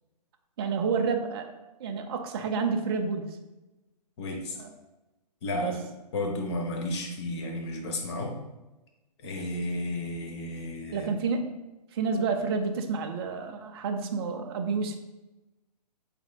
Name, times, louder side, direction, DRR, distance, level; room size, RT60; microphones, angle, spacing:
voice 1, 0.6-1.5 1.8-3.4 4.6-4.7 5.5-5.8 10.9-11.6 11.9-15.0, right 5 dB, 35° right, 4 dB, 0.4 m, -29 dB
voice 2, 4.2-4.6 5.4-5.8 6.1-8.4 9.2-11.1, left 1 dB, 40° left, 2 dB, 0.8 m, -32 dB
4.3 x 3.4 x 2.2 m, 1.0 s
hypercardioid pair, 130°, 21 cm